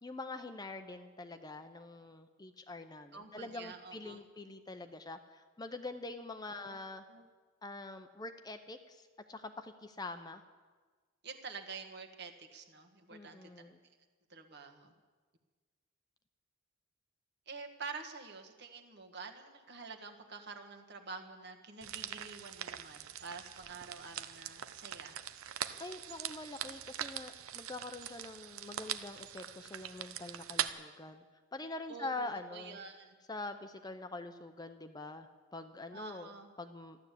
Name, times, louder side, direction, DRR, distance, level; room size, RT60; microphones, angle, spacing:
voice 1, 0.0-7.0 7.6-10.4 13.1-13.8 25.8-31.2 31.5-32.8 33.3-36.3 36.6-37.0, left 2 dB, 20° left, 8 dB, 0.6 m, -45 dB
voice 2, 3.1-4.2 6.5-6.8 7.1-7.3 11.2-13.6 14.3-14.9 17.5-25.2 31.9-33.2 35.9-36.5, right 4 dB, 50° right, 4 dB, 1.5 m, -48 dB
sound 1, 21.8-30.7, right 10 dB, 90° right, 0.7 m, -42 dB
14.0 x 11.5 x 8.3 m, 1.4 s
head